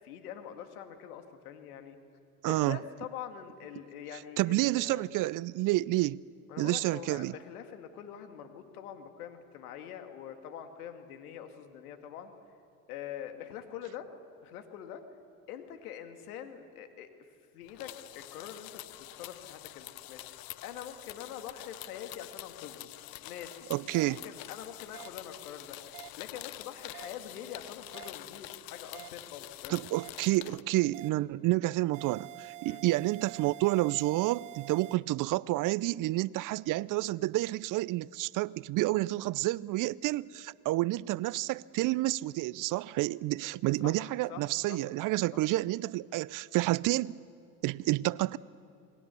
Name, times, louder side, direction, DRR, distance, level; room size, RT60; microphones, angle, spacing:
voice 1, 0.0-2.0 2.4-5.0 6.5-12.3 12.9-14.1 14.4-15.0 15.5-17.1 17.5-18.8 19.2-20.2 20.6-22.9 23.2-23.7 24.1-29.8 32.7-32.8 43.8-44.8, left 9 dB, 80° left, 2.1 m, -44 dB
voice 2, 2.4-2.8 4.4-6.2 6.6-7.3 23.7-24.2 29.7-47.2 47.6-48.4, right 18 dB, 45° right, 0.5 m, -29 dB
sound 1, 17.7-30.6, left 16 dB, 50° left, 0.9 m, -46 dB
sound 2, 23.9-24.1 24.9-25.1 25.9-26.1 26.9-27.1 27.9-28.1 28.9-29.1 29.9-30.1 30.9-31.1 31.9-34.9, right 23 dB, 70° right, 0.9 m, -46 dB
27.5 x 21.0 x 7.0 m
hypercardioid pair, 70°, 44 cm